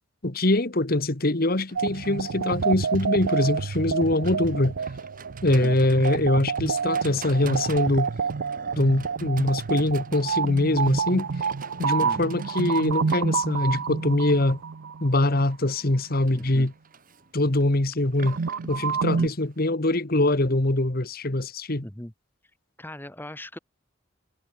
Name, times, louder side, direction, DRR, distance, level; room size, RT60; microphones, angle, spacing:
voice 1, 0.2-4.7 5.4-8.1 8.8-11.3 11.8-14.6 15.0-16.7 17.3-18.4 18.7-21.9, left 1 dB, 50° left, 1.6 m, -23 dB
Livestock farm animals working animals, 1.7-19.7, right 5 dB, 45° right, 7.2 m, -47 dB
sound 1, 1.8-15.5 18.2-19.3, right 5 dB, 75° right, 0.6 m, -28 dB
voice 2, 16.3-16.7 19.2-19.3 21.8-22.1 22.8-23.6, left 1 dB, 10° left, 1.3 m, -38 dB
head